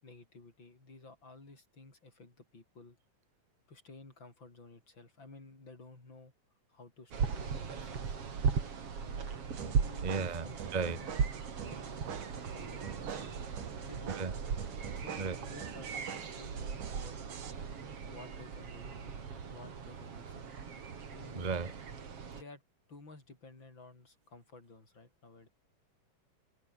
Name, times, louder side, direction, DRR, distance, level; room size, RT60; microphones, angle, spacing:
voice 1, 0.0-3.0 3.7-6.3 6.7-8.4 9.0-11.2 11.6-12.0 12.4-13.4 13.8-14.4 14.9-17.2 18.1-20.5 21.1-21.6 22.3-22.6 22.9-25.5, left 3 dB, 35° left, 6.5 m, -54 dB
sound 1, 7.1-22.4, right 6 dB, 45° right, 3.5 m, -38 dB
sound 2, 9.5-17.5, right 8 dB, 65° right, 4.0 m, -46 dB
voice 2, 10.0-10.5 10.7-11.0 14.2-14.3 15.2-15.3 21.3-21.7, right 4 dB, 30° right, 0.7 m, -34 dB
omnidirectional pair, 3.8 m